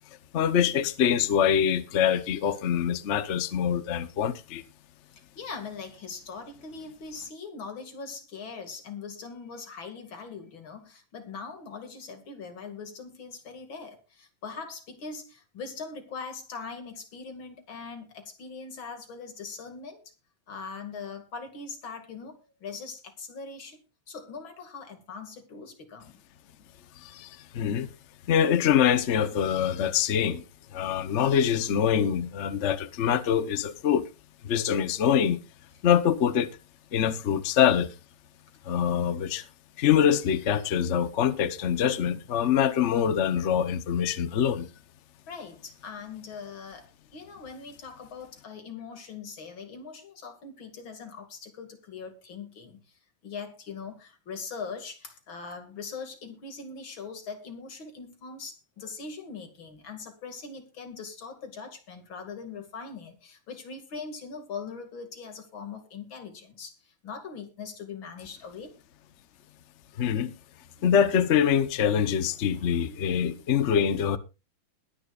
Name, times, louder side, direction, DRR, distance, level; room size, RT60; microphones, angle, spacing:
voice 1, 0.3-4.6 27.0-27.9 28.3-30.4 30.7-34.1 34.4-35.4 35.8-36.5 36.9-37.9 38.6-39.4 39.8-44.7 70.0-70.3 70.8-74.2, left 8 dB, 45° left, 1.0 m, -24 dB
voice 2, 5.4-20.0 20.5-23.8 24.1-26.1 45.3-68.7 70.7-71.1 72.4-73.9, left 5 dB, 85° left, 3.0 m, -41 dB
21.0 x 10.0 x 2.4 m
omnidirectional pair, 2.1 m